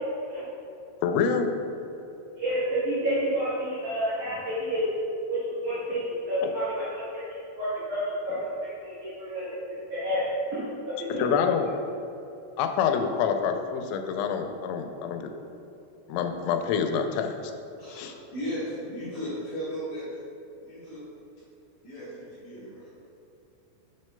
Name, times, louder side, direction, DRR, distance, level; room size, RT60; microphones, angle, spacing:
voice 1, 1.0-1.6 11.2-11.7 12.6-15.3 16.1-17.5 17.9-18.1, left 6 dB, 90° left, 6 dB, 2.9 m, -27 dB
voice 2, 2.4-4.9 5.3-7.0 7.6-9.6 9.9-10.6 10.8-11.5, equal, 65° right, -11 dB, 2.0 m, -29 dB
voice 3, 17.8-20.1 20.6-21.0 21.8-22.9, equal, 60° left, -10 dB, 2.0 m, -36 dB
7.5 x 7.5 x 2.2 m, 3.0 s
omnidirectional pair, 5.2 m